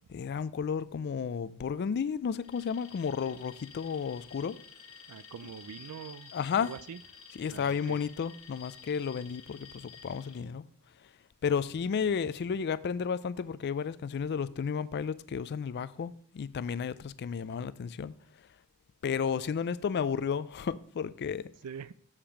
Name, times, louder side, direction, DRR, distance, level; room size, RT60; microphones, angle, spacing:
voice 1, 0.1-4.6 6.3-6.7 7.4-10.6 11.4-18.1 19.0-21.5, left 6 dB, 50° left, 0.3 m, -32 dB
Alarm, 2.4-10.4, left 6 dB, 70° left, 1.3 m, -52 dB
voice 2, 5.1-7.0 7.5-8.0 21.6-21.9, right 7 dB, 85° right, 0.4 m, -44 dB
7.3 x 5.0 x 5.8 m
head